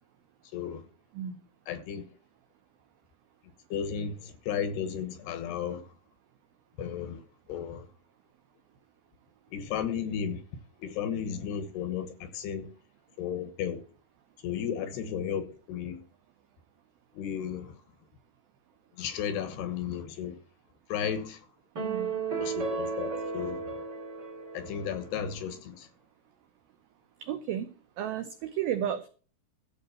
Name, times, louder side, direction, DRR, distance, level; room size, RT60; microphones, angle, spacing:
voice 1, 0.5-0.8 1.7-2.1 3.7-5.8 6.8-7.2 7.5-7.9 9.5-10.4 10.8-12.7 13.2-13.8 14.4-16.0 17.1-17.8 19.0-20.4 20.9-21.4 22.4-23.8 24.5-25.9, left 8 dB, 70° left, 3.0 m, -34 dB
sound 1, 21.7-25.2, right 4 dB, 35° right, 2.0 m, -34 dB
voice 2, 27.2-29.1, right 10 dB, 85° right, 2.1 m, -33 dB
14.0 x 5.2 x 7.0 m
omnidirectional pair, 5.3 m